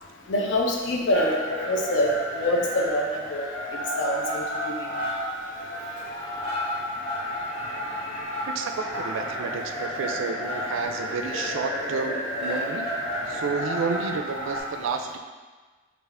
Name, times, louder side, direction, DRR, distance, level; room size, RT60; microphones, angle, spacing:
voice 1, 0.3-3.5 4.0-4.9, left 1 dB, 70° left, 0 dB, 0.5 m, -25 dB
sound 1, 1.1-14.6, equal, 30° left, 0.9 m, -31 dB
voice 2, 8.5-12.9 13.3-15.2, right 5 dB, 85° right, 6 dB, 0.3 m, -31 dB
3.5 x 2.4 x 3.3 m, 1.4 s
head